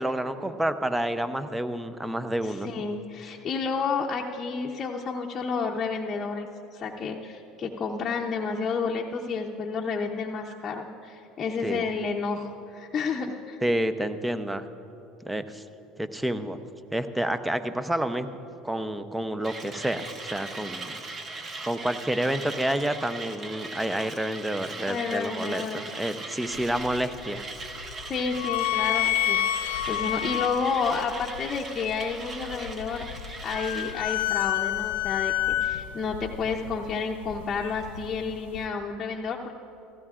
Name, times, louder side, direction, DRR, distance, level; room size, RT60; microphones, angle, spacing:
voice 1, 0.0-2.7 11.6-11.9 13.6-14.7 15.2-15.6 16.0-16.6 16.9-18.4 18.6-21.0 21.6-27.4, right 1 dB, 10° right, 11 dB, 0.6 m, -29 dB
voice 2, 2.6-13.6 24.8-25.8 28.0-39.5, left 5 dB, 35° left, -1 dB, 0.7 m, -31 dB
Mechanisms, 19.4-34.0, right 3 dB, 35° right, 1.2 m, -39 dB
sound 1, 26.5-38.7, left 13 dB, 85° left, 0.4 m, -30 dB
16.0 x 15.0 x 2.5 m, 2.7 s
hypercardioid pair, 85°, 0 cm